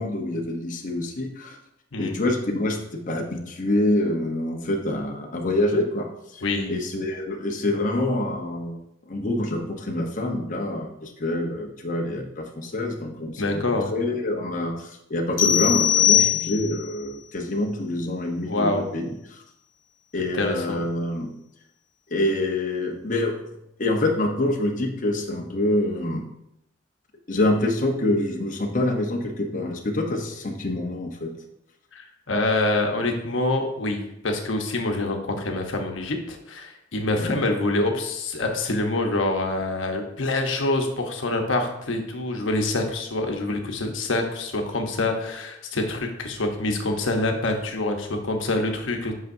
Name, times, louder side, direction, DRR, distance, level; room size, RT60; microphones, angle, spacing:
voice 1, 0.0-1.6 2.0-6.1 6.3-6.4 6.7-8.8 9.1-13.6 13.9-19.4 20.1-21.3 22.1-23.4 23.8-26.2 27.3-31.3 37.2-37.4, left 1 dB, 40° left, 1 dB, 0.8 m, -26 dB
voice 2, 6.4-6.8 13.4-13.9 18.4-18.8 20.3-20.8 31.9-49.1, left 2 dB, 85° left, 3 dB, 0.9 m, -26 dB
sound 1, 15.4-16.9, left 11 dB, 65° left, 1.1 m, -20 dB
8.1 x 5.7 x 2.6 m, 0.81 s
head